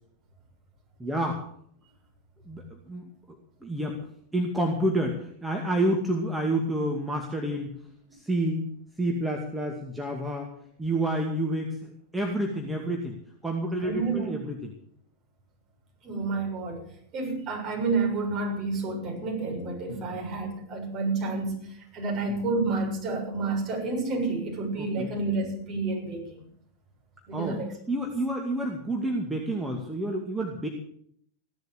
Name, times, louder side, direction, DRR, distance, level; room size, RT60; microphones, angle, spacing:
voice 1, 1.0-1.4 2.5-4.0 4.3-7.7 8.1-8.6 9.0-10.5 10.8-13.2 13.4-14.7 19.9-20.2 22.3-22.4 24.8-25.1 27.3-27.6 27.9-30.7, right 1 dB, 5° right, 2.4 m, -29 dB
voice 2, 13.8-14.3 16.0-16.8 17.1-21.7 21.9-26.4 27.3-27.7, right 3 dB, 35° right, 6.9 m, -29 dB
16.0 x 12.0 x 6.7 m
figure-of-eight pair, 90°, 0 cm